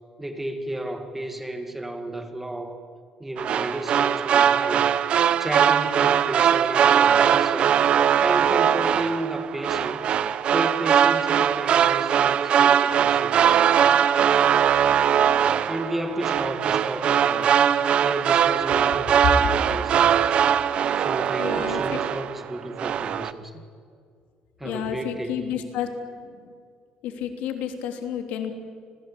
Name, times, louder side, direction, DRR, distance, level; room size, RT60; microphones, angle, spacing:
voice 1, 0.2-2.8 3.2-4.9 5.4-7.8 8.2-10.0 10.5-13.6 15.7-17.6 18.0-20.4 21.0-23.6 24.6-25.4, right 1 dB, 5° right, 6 dB, 2.1 m, -32 dB
sound 1, 3.4-22.5 22.8-23.3, right 8 dB, 45° right, 0.9 m, -21 dB
voice 2, 21.4-21.8 24.6-25.9 27.0-28.5, left 9 dB, 80° left, 5 dB, 3.3 m, -30 dB
30.0 x 21.0 x 8.7 m, 2.1 s
cardioid pair, 155°, 3 cm